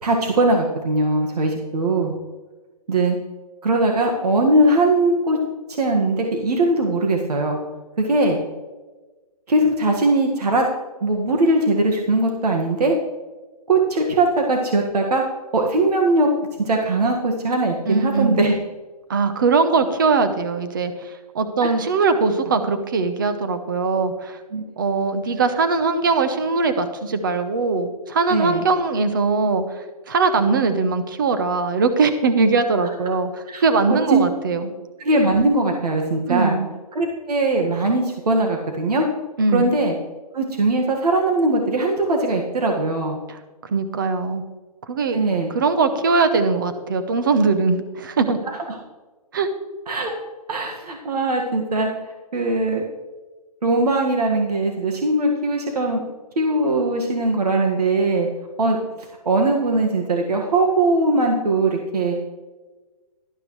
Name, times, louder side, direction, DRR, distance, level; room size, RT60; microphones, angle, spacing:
voice 1, 0.0-2.1 2.9-3.2 3.6-5.4 5.8-7.6 8.0-8.4 9.5-10.7 11.0-13.0 13.7-15.2 15.5-16.3 16.6-18.5 21.6-21.7 24.5-24.6 28.3-28.6 33.5-34.2 35.0-36.6 36.9-39.1 39.5-39.9 40.3-43.2 45.1-45.5 49.9-50.1 50.5-51.9 52.3-52.8 53.6-56.0 56.3-58.3 58.6-62.2, right 2 dB, 80° right, 1 dB, 1.8 m, -20 dB
voice 2, 17.9-18.4 19.1-24.4 24.8-34.7 36.3-36.7 39.4-39.7 43.3-44.4 44.9-45.2 45.5-48.4 49.3-49.5, right 4 dB, 35° right, 9 dB, 0.9 m, -21 dB
12.0 x 11.5 x 3.2 m, 1.3 s
hypercardioid pair, 175°, 20 cm